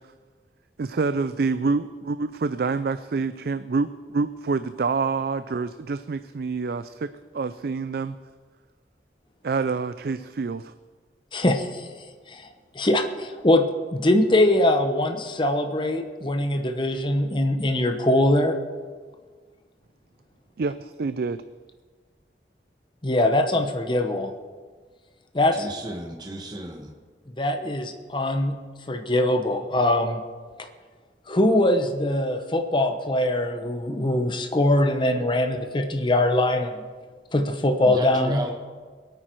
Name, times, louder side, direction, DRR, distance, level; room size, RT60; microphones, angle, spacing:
voice 1, 0.8-8.2 9.4-10.7 20.6-21.4, right 4 dB, 60° right, 12 dB, 0.4 m, -27 dB
voice 2, 11.3-11.9 12.3-12.5 12.7-13.7 13.9-18.6 23.0-24.3 25.3-25.7 27.4-28.5 28.9-30.2 31.3-36.8 37.3-38.4, left 1 dB, 25° left, 5 dB, 0.9 m, -22 dB
voice 3, 25.5-26.9 37.8-38.5, right 1 dB, 25° right, 2 dB, 1.3 m, -34 dB
22.5 x 9.2 x 4.5 m, 1.5 s
head